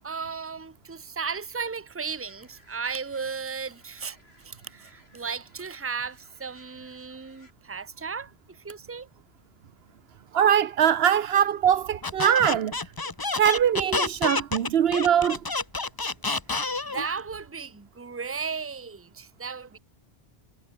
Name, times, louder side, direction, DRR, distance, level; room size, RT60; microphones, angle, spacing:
voice 1, 0.0-4.2 4.4-9.1 16.9-19.8, right 5 dB, 15° right, 0.8 m, -35 dB
sound 1, 2.0-7.5, left 1 dB, 90° left, 7.5 m, -60 dB
voice 2, 10.3-12.7 13.3-15.4, right 9 dB, 75° right, 1.0 m, -22 dB
Squeak, 12.0-17.1, left 3 dB, 25° left, 0.9 m, -29 dB
omnidirectional pair, 1.0 m